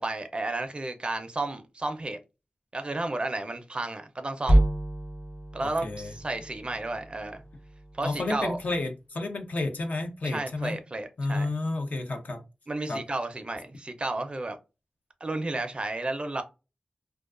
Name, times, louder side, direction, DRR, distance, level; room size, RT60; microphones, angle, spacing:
voice 1, 0.0-2.2 2.7-4.6 5.5-7.4 7.9-8.6 10.2-11.5 12.7-14.6 15.2-16.4, right 2 dB, 40° right, 0.5 m, -32 dB
sound 1, 4.5-8.8, right 1 dB, 50° left, 0.9 m, -29 dB
voice 2, 5.6-6.1 8.0-10.8 11.2-12.4 12.9-13.0, left 2 dB, 65° left, 0.6 m, -31 dB
2.3 x 2.3 x 2.4 m
wide cardioid pair, 60°, 3 cm